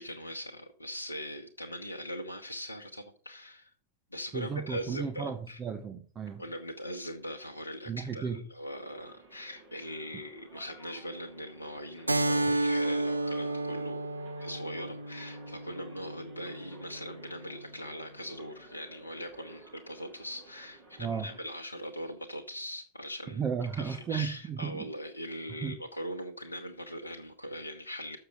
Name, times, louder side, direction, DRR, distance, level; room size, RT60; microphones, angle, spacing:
voice 1, 0.0-3.7 4.1-5.6 6.4-14.0 14.4-23.4 23.7-28.2, equal, 85° left, 2 dB, 0.9 m, -41 dB
voice 2, 4.3-6.4 7.9-8.4 21.0-21.3 23.3-24.9 25.6-25.8, right 6 dB, 25° right, 6 dB, 1.0 m, -34 dB
sound 1, 8.7-21.5, right 3 dB, 45° right, 5.5 m, -54 dB
Keyboard (musical), 12.1-17.2, right 2 dB, 85° right, 0.4 m, -32 dB
6.7 x 6.6 x 6.5 m, 0.41 s
figure-of-eight pair, 90°, 0 cm